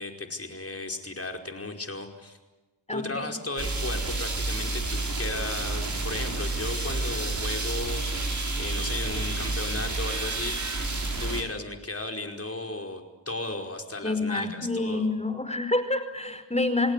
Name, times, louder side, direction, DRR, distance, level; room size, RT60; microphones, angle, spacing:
voice 1, 0.0-2.4 2.9-15.1, left 2 dB, 30° left, 3 dB, 5.1 m, -35 dB
voice 2, 2.9-3.4 14.0-16.9, left 2 dB, 15° left, 9 dB, 4.9 m, -28 dB
sound 1, 3.6-11.4, right 2 dB, 40° right, 5.8 m, -30 dB
29.5 x 18.5 x 8.3 m, 1.1 s
supercardioid pair, 40°, 46 cm